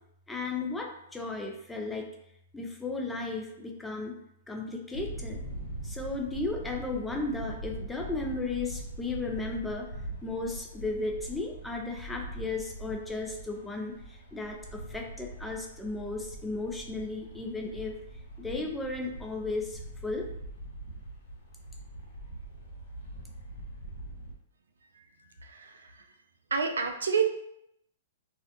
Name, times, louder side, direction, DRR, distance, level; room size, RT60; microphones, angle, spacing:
voice 1, 0.3-2.1 2.5-4.2 4.5-5.5 5.8-9.9 10.2-14.0 14.3-18.0 18.4-20.3, left 3 dB, 5° left, 1 dB, 0.4 m, -35 dB
sound 1, 4.9-24.3, right 1 dB, 60° left, 0.8 m, -42 dB
voice 2, 25.4-26.0 26.5-27.3, right 6 dB, 75° right, 5 dB, 0.3 m, -29 dB
2.6 x 2.0 x 2.8 m, 0.78 s
figure-of-eight pair, 115°, 0 cm